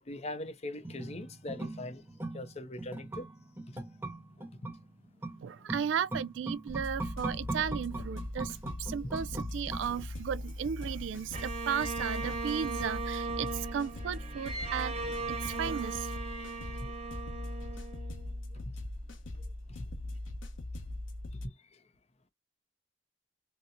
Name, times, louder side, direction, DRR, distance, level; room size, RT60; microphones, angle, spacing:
voice 1, 0.0-2.0 2.3-3.3 3.7-3.8 4.6-4.7 15.3-15.4 16.8-17.0 18.5-18.6 19.8-19.9 21.4-21.5, left 1 dB, 35° left, 0.5 m, -41 dB
sound 1, 0.8-10.4 10.7-10.8, right 2 dB, 10° right, 0.7 m, -41 dB
voice 2, 5.4-16.2, right 7 dB, 70° right, 0.3 m, -35 dB
sound 2, 6.7-21.5, left 1 dB, 85° left, 1.0 m, -41 dB
Bowed string instrument, 11.3-18.6, right 4 dB, 30° right, 1.2 m, -38 dB
4.2 x 2.1 x 2.5 m
head